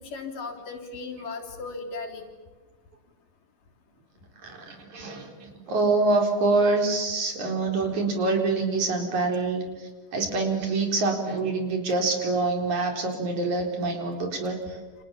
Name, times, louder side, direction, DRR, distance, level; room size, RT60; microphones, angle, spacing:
voice 1, 0.0-2.2, left 4 dB, 90° left, 3 dB, 5.1 m, -36 dB
voice 2, 4.4-14.8, right 3 dB, 65° right, 3 dB, 5.5 m, -26 dB
29.5 x 27.5 x 7.3 m, 1.3 s
omnidirectional pair, 3.7 m